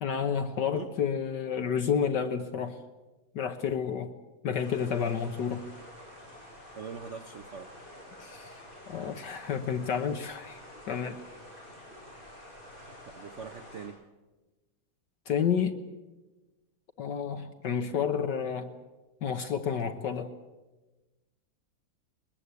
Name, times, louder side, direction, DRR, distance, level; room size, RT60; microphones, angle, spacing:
voice 1, 0.0-2.8 3.3-4.1 4.4-5.6 8.2-11.2 15.3-15.8 17.0-18.7 19.2-20.3, left 7 dB, 60° left, 8 dB, 1.6 m, -30 dB
sound 1, 4.6-13.9, left 1 dB, 25° left, 7.0 m, -49 dB
voice 2, 6.7-7.7 13.1-14.0, right 6 dB, 45° right, 7 dB, 1.1 m, -42 dB
22.0 x 19.5 x 8.3 m, 1.2 s
omnidirectional pair, 2.2 m